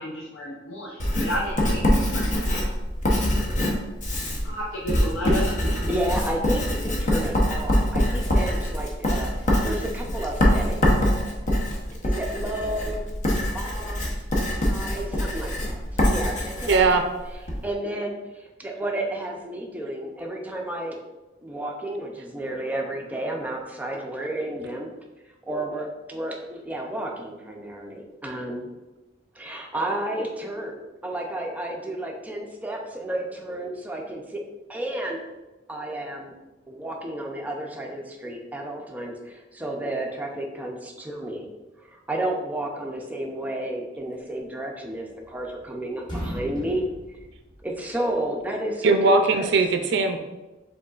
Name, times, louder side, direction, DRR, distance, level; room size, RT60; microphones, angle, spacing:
voice 1, 0.0-1.9 2.1-2.7 4.4-5.5, equal, 85° left, -3 dB, 0.6 m, -32 dB
Writing, 1.0-17.6, equal, 40° left, 0.8 m, -24 dB
voice 2, 5.9-9.3 9.6-10.9 12.2-13.1 13.5-14.0 14.6-15.8 16.1-17.0 17.6-18.2 18.6-21.0 21.4-24.9 25.5-28.7 29.4-34.4 34.7-35.2 35.7-36.3 36.7-39.1 39.5-41.4 42.1-45.1 45.3-46.8 47.6-49.5, right 1 dB, 10° right, 0 dB, 0.5 m, -31 dB
voice 3, 16.7-17.0 48.8-50.2, right 3 dB, 65° right, 6 dB, 0.4 m, -19 dB
sound 1, 44.9-45.7 46.0-48.1, equal, 25° left, 1.1 m, -37 dB
5.1 x 3.7 x 2.4 m, 1.1 s
head